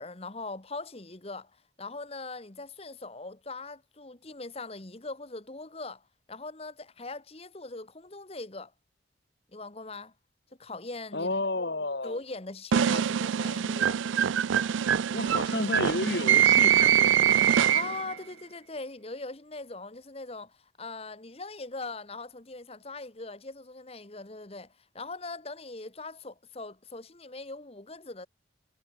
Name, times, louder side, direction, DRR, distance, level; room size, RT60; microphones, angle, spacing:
voice 1, 0.0-1.5 1.8-8.7 9.5-10.1 10.6-11.4 12.0-14.0 17.7-28.3, left 3 dB, 30° left, 1.2 m, -41 dB
voice 2, 11.1-12.2 15.1-17.5, left 2 dB, 60° left, 2.0 m, -32 dB
sound 1, 12.7-18.1, right 9 dB, 80° right, 0.4 m, -23 dB
head